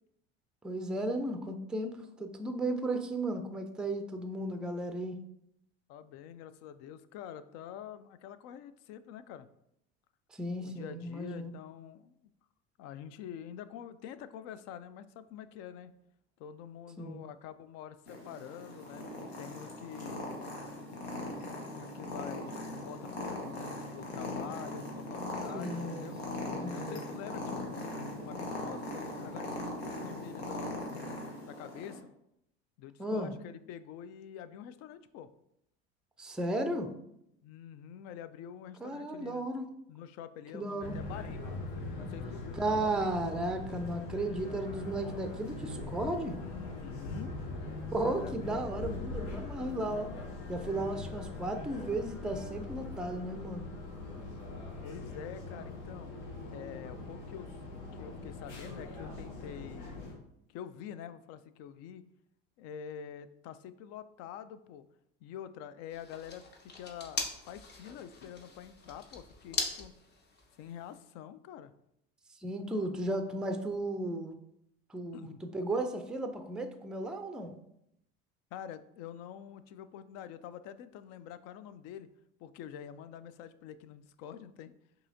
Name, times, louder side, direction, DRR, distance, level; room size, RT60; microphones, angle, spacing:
voice 1, 0.6-5.2 10.3-11.5 17.0-17.2 25.5-26.1 26.5-27.0 33.0-33.3 36.2-36.9 38.8-39.7 40.5-41.0 42.5-46.4 47.9-50.1 50.5-53.7 72.4-74.4 74.9-77.5, right 1 dB, 5° right, 6 dB, 0.4 m, -35 dB
voice 2, 5.9-9.5 10.7-12.1 12.8-15.9 16.4-19.1 19.4-20.3 21.7-26.2 26.7-30.7 31.5-32.1 32.8-35.3 37.4-39.5 39.9-41.6 42.0-43.2 46.4-47.4 48.1-48.6 54.8-56.1 56.5-60.0 60.5-62.0 62.6-64.9 65.2-69.9 70.6-71.7 75.1-75.4 78.5-82.1 82.4-84.7, left 9 dB, 55° left, 14 dB, 0.4 m, -46 dB
Purr, 18.1-32.0, left 2 dB, 85° left, 1.0 m, -40 dB
sound 1, 40.8-60.1, left 2 dB, 70° left, 1.5 m, -41 dB
sound 2, 65.9-71.0, left 3 dB, 35° left, 0.9 m, -41 dB
5.4 x 2.9 x 2.7 m, 0.77 s
hypercardioid pair, 80°, 31 cm